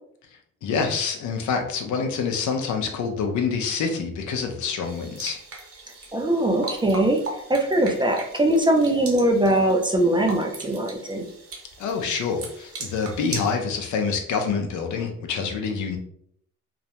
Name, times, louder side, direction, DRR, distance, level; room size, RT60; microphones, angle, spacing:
voice 1, 0.6-5.4 11.8-16.0, left 5 dB, 75° left, 4 dB, 0.6 m, -26 dB
sound 1, 4.8-13.5, right 3 dB, 50° right, 0.8 m, -39 dB
voice 2, 6.1-7.2 7.5-11.3, right 1 dB, 15° right, 2 dB, 0.4 m, -21 dB
2.4 x 2.1 x 2.8 m, 0.68 s
cardioid pair, 90°, 30 cm